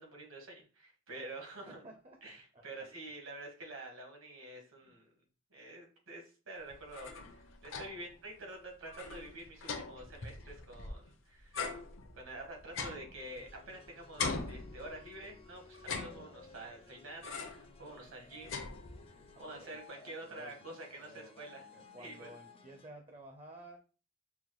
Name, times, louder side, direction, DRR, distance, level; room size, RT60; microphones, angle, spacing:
voice 1, 0.0-1.8 2.2-5.1 5.5-11.6 12.2-18.6 19.4-21.7 22.0-22.3, right 2 dB, 75° right, 1 dB, 1.4 m, -48 dB
voice 2, 1.6-2.2 2.5-2.6 4.8-4.9 19.5-21.4 21.7-23.8, right 1 dB, 30° right, 4 dB, 0.5 m, -54 dB
sound 1, 6.7-8.2 8.5-8.6 8.9-11.1 11.5-13.8 14.2-15.3 15.7-16.7 17.2-17.7 18.1-19.2, left 4 dB, 70° left, 0.7 m, -41 dB
sound 2, 13.2-22.9, left 4 dB, 30° left, 0.4 m, -58 dB
5.3 x 2.2 x 3.1 m, 0.35 s
head